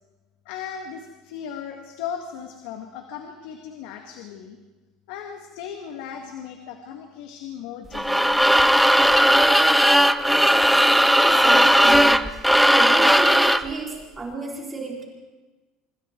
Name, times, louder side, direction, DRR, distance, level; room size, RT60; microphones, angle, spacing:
voice 1, 0.5-4.6 5.1-8.4, left 8 dB, 80° left, 4 dB, 2.0 m, -37 dB
sound 1, 7.9-13.7, equal, ahead, 0.6 m, -17 dB
voice 2, 11.1-12.4 12.7-15.0, right 3 dB, 15° right, -1 dB, 4.6 m, -32 dB
26.0 x 25.5 x 4.6 m, 1.2 s
cardioid pair, 145°, 0 cm